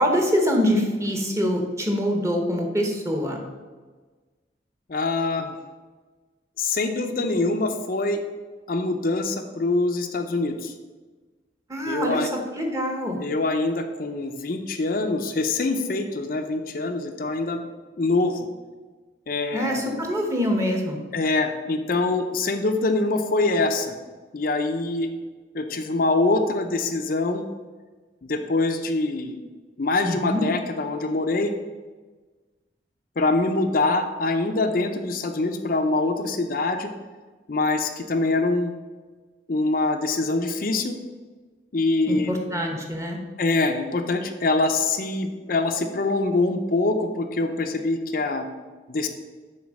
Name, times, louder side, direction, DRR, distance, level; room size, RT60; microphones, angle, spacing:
voice 1, 0.0-3.4 11.7-13.2 19.5-21.0 30.0-30.4 42.1-43.2, equal, 15° right, 2 dB, 1.1 m, -24 dB
voice 2, 4.9-5.5 6.6-8.2 8.7-10.7 11.9-12.3 13.2-17.6 18.0-18.5 19.3-19.9 21.1-24.0 24.3-25.1 25.5-27.4 28.2-29.4 29.8-31.5 33.2-36.9 37.5-38.7 39.5-40.9 41.7-42.3 43.4-48.4 48.9-49.1, left 2 dB, 55° left, 5 dB, 0.6 m, -24 dB
7.2 x 3.9 x 6.3 m, 1.3 s
head